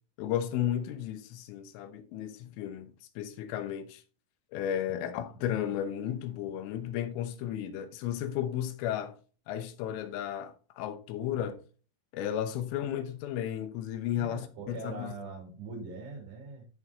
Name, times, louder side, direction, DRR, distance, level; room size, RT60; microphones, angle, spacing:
voice 1, 0.2-4.0 4.5-9.2 9.5-11.6 12.1-15.1, left 10 dB, 90° left, 3.6 m, -34 dB
voice 2, 4.9-5.5 14.1-16.7, right 3 dB, 65° right, 4.5 m, -43 dB
13.5 x 6.4 x 2.8 m
omnidirectional pair, 5.6 m